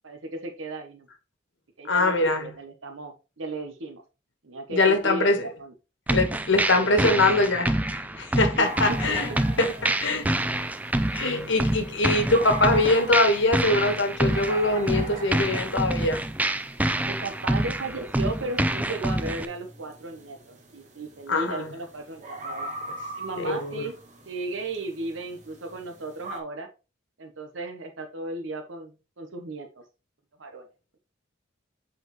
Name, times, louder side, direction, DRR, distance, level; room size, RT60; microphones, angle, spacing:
voice 1, 0.0-1.1 1.8-4.0 4.4-5.7 6.9-7.1 8.5-9.4 17.0-22.7 23.2-23.9 24.3-26.7 27.2-28.9 29.2-29.7 30.4-30.7, right 2 dB, 85° right, 1.0 m, -35 dB
voice 2, 1.9-2.5 4.7-5.5 6.1-9.3 9.6-9.7 10.0-10.5 11.1-16.2 21.3-21.6 23.4-23.9, left 2 dB, 70° left, 1.3 m, -23 dB
sound 1, 6.1-19.4, right 1 dB, 10° right, 0.3 m, -27 dB
sound 2, 8.6-26.4, right 2 dB, 35° right, 1.4 m, -42 dB
8.0 x 4.3 x 3.1 m
head